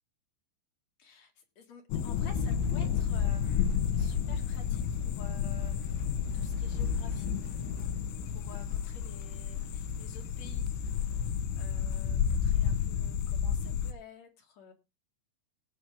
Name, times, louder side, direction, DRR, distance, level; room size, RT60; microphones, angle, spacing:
voice 1, 1.0-7.9 8.3-11.0 11.6-14.7, left 5 dB, 55° left, 3 dB, 2.1 m, -53 dB
sound 1, 1.9-13.9, left 8 dB, 85° left, 3.7 m, -31 dB
sound 2, 2.2-12.9, right 5 dB, 70° right, 3.6 m, -54 dB
18.5 x 7.1 x 3.5 m, 0.27 s
omnidirectional pair, 5.4 m